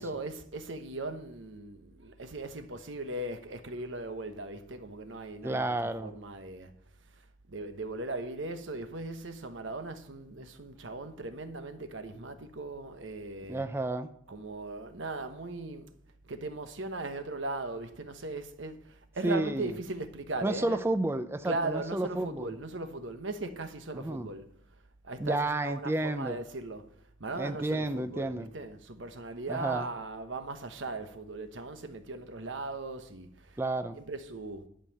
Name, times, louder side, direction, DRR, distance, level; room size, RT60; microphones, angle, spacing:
voice 1, 0.0-6.7 7.1-13.6 14.3-15.9 16.2-20.8 21.4-24.5 25.0-26.9 27.2-33.6 33.9-34.7, right 2 dB, 75° right, 1.1 m, -38 dB
voice 2, 5.4-6.1 13.5-14.1 19.2-19.7 20.4-22.5 23.9-24.3 25.2-26.4 27.3-28.5 29.5-29.9 33.6-34.0, right 2 dB, 10° right, 0.4 m, -31 dB
11.5 x 5.5 x 7.3 m
head